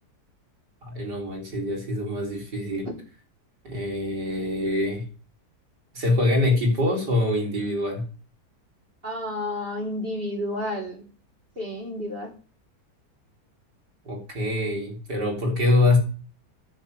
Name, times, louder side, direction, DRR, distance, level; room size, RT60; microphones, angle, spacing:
voice 1, 0.8-2.9 3.6-5.1 5.9-8.0 14.0-16.0, left 2 dB, 80° right, -1 dB, 4.7 m, -24 dB
voice 2, 9.0-11.0 11.6-12.3, left 1 dB, 35° right, -1 dB, 4.3 m, -31 dB
10.0 x 6.1 x 8.6 m, 0.37 s
omnidirectional pair, 1.8 m